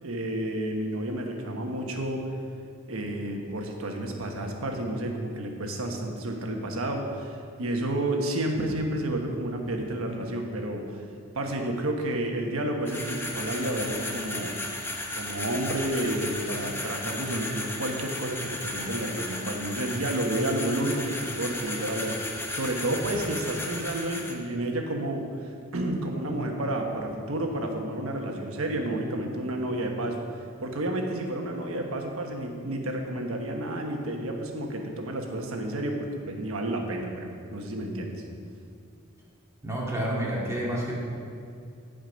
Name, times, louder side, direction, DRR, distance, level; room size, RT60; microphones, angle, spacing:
voice 1, 0.0-2.2 2.9-11.0 11.3-14.6 15.1-30.2 30.6-38.2, right 1 dB, 80° right, 2 dB, 1.3 m, -30 dB
sound 1, 12.9-24.3, left 2 dB, 10° left, 0.9 m, -35 dB
voice 2, 39.6-41.0, right 1 dB, 15° right, -5 dB, 2.1 m, -29 dB
15.5 x 5.2 x 5.2 m, 2.4 s
head